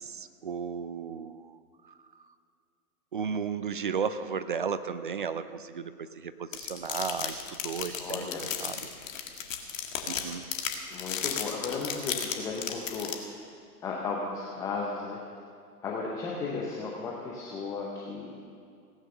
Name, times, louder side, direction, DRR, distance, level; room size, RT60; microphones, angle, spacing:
voice 1, 0.0-1.6 1.8-2.3 3.1-8.8 10.1-10.5, right 6 dB, 35° right, 12 dB, 0.4 m, -34 dB
sound 1, 6.5-13.1, left 8 dB, 50° left, 1.9 m, -33 dB
voice 2, 8.0-8.4 10.9-13.4 13.8-15.2 15.8-18.3, left 4 dB, 5° left, -3 dB, 0.6 m, -35 dB
17.5 x 9.1 x 6.6 m, 2.2 s
hypercardioid pair, 130°, 48 cm